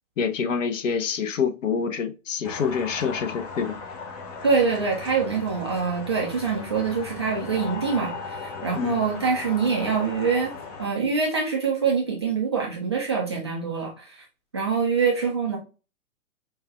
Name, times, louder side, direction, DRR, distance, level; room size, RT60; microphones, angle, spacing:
voice 1, 0.2-3.8 8.7-9.0, left 6 dB, 60° left, 0.8 m, -26 dB
sound 1, 2.4-10.9, left 4 dB, 25° left, 0.6 m, -37 dB
voice 2, 4.4-10.5 10.8-14.2 14.5-15.6, right 5 dB, 20° right, 0.3 m, -25 dB
5.5 x 2.3 x 2.3 m
figure-of-eight pair, 120°, 44 cm